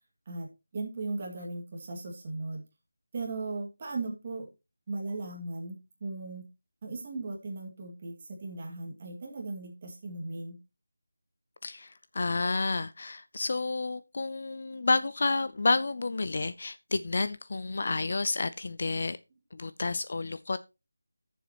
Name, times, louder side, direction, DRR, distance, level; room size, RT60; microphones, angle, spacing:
voice 1, 0.3-2.6 3.1-4.5 4.9-6.5 6.8-10.6, right 3 dB, 25° right, 2.1 m, -37 dB
voice 2, 11.6-19.2 19.5-20.6, left 3 dB, 40° left, 0.4 m, -30 dB
15.0 x 7.1 x 3.0 m
figure-of-eight pair, 175°, 0 cm